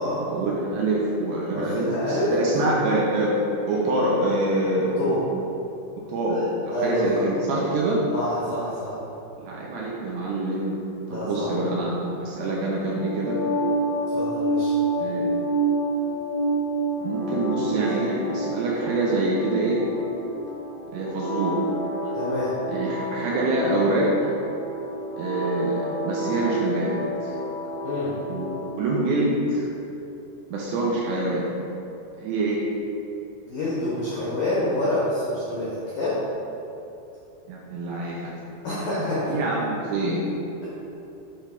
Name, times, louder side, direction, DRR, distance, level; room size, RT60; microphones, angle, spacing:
voice 1, 0.3-3.4 3.7-5.1 6.1-8.0 9.4-10.8 11.1-13.4 15.0-15.3 17.0-19.8 20.9-21.6 22.0-22.1 22.7-24.3 25.2-26.9 27.2-27.4 28.3-29.7 30.5-31.4 32.2-32.6 37.5-38.3 39.3-40.2, right 2 dB, 80° right, -5 dB, 2.4 m, -25 dB
voice 2, 1.5-2.7 4.8-5.2 6.3-6.4 6.7-7.2 8.1-9.0 11.1-11.7 14.1-14.8 17.7-17.8 22.1-22.6 27.8-28.2 33.5-36.2 38.6-39.4, left 1 dB, 90° left, -8 dB, 1.8 m, -27 dB
sound 1, 12.9-28.8, right 1 dB, 75° left, 1.4 m, -28 dB
8.5 x 3.4 x 5.9 m, 2.9 s
omnidirectional pair, 5.8 m